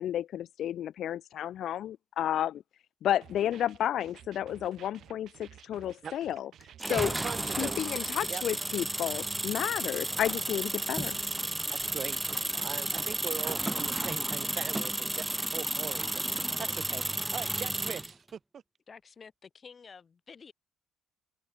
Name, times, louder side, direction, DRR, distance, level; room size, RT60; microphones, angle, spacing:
voice 1, 0.0-2.6 3.0-6.5 6.9-7.1 7.6-11.2, left 11 dB, 60° left, 0.5 m, -32 dB
sound 1, 3.2-8.3, right 11 dB, 55° right, 2.9 m, -54 dB
sound 2, 6.8-18.1, right 1 dB, 10° right, 0.5 m, -32 dB
voice 2, 6.9-7.8 8.3-8.4 11.7-15.3 15.5-18.6, right 7 dB, 40° right, 1.4 m, -41 dB
voice 3, 18.9-20.5, left 5 dB, 30° left, 2.2 m, -50 dB
cardioid pair, 130°, 0 cm